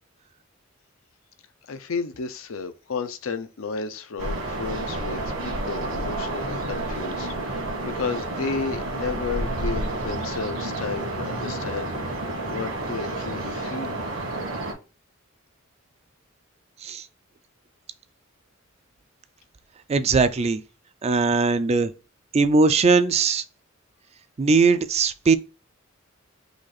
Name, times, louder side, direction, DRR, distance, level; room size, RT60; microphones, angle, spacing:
voice 1, 1.7-12.2 12.5-14.0, left 4 dB, 75° left, 0.6 m, -33 dB
sound 1, 4.2-14.7, right 2 dB, 75° right, 1.7 m, -30 dB
voice 2, 19.9-20.6 21.0-21.9 22.3-23.4 24.4-25.4, right 4 dB, 30° right, 0.4 m, -20 dB
4.9 x 2.4 x 4.1 m
head